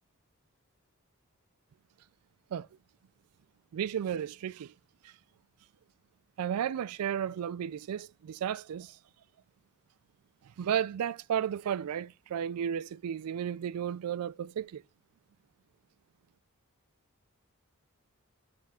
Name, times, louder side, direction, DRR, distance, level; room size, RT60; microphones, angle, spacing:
voice 1, 3.7-4.7 6.4-9.0 10.6-14.8, right 9 dB, 85° right, 0.3 m, -33 dB
8.6 x 3.4 x 4.3 m
head